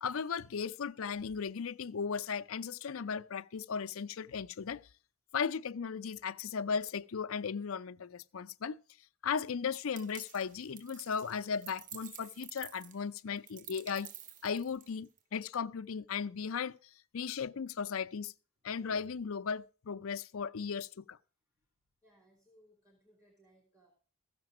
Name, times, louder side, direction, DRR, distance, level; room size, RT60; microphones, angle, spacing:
voice 1, 0.0-4.8 5.3-8.8 9.2-14.1 14.4-16.8 17.1-18.3 18.6-21.2, left 6 dB, 70° left, 0.5 m, -36 dB
sound 1, 10.0-15.2, right 9 dB, 40° right, 0.5 m, -51 dB
voice 2, 22.0-24.0, right 1 dB, 15° right, 2.7 m, -66 dB
14.5 x 6.8 x 6.0 m
head